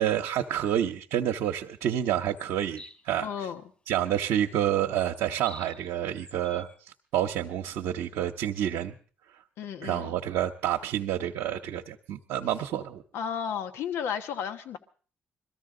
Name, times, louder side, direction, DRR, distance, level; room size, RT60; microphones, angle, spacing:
voice 1, 0.0-3.3 3.9-6.7 7.1-8.9 9.8-13.0, right 11 dB, 80° right, 2 dB, 0.8 m, -28 dB
sound 1, 2.4-3.0 4.7-5.9 6.2-6.8, left 2 dB, 30° left, 3.3 m, -49 dB
voice 2, 3.2-3.6 9.6-10.1 13.1-14.8, left 8 dB, 75° left, 7 dB, 1.2 m, -33 dB
22.0 x 14.0 x 3.8 m, 0.41 s
supercardioid pair, 60°, 4 cm